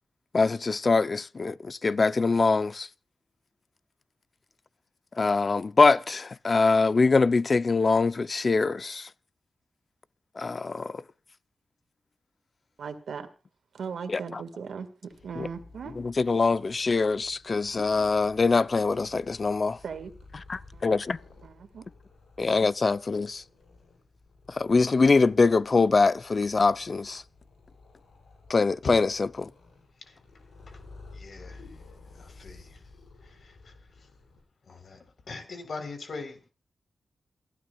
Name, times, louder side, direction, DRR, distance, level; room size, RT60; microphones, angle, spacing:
voice 1, 0.3-2.9 5.2-9.1 10.4-11.0 14.1-14.4 15.4-15.5 16.0-19.8 20.5-21.2 22.4-23.4 24.5-27.2 28.5-29.5, left 4 dB, 50° left, 0.6 m, -23 dB
voice 2, 12.8-13.3 13.7-16.0 19.8-20.1 20.7-21.9, right 6 dB, 90° right, 1.9 m, -39 dB
Purr, 15.1-34.4, left 3 dB, 90° left, 6.6 m, -53 dB
voice 3, 31.1-31.6 32.1-32.8 33.2-33.7 34.7-36.5, left 4 dB, 70° left, 3.9 m, -41 dB
28.5 x 12.0 x 2.4 m
cardioid pair, 65°, 0 cm